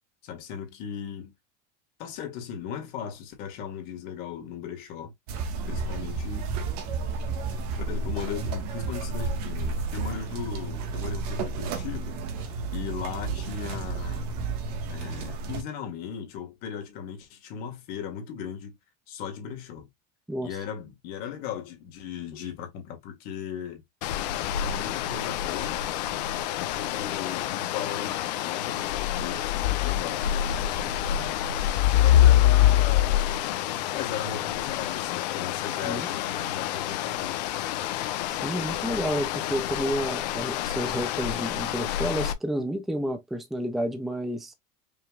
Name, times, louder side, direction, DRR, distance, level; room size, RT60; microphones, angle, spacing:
voice 1, 0.2-1.3 2.0-5.1 5.7-6.5 7.5-14.3 14.9-18.7 19.1-19.9 20.4-23.8 24.4-25.8 26.6-31.6 32.0-33.3 33.9-37.5, left 8 dB, 45° left, 1.8 m, -37 dB
sound 1, 5.3-15.6, right 4 dB, 65° right, 1.5 m, -32 dB
sound 2, 24.0-42.3, left 12 dB, 80° left, 0.8 m, -26 dB
voice 2, 38.3-44.5, equal, ahead, 0.5 m, -30 dB
5.5 x 3.4 x 2.4 m
cardioid pair, 175°, 21 cm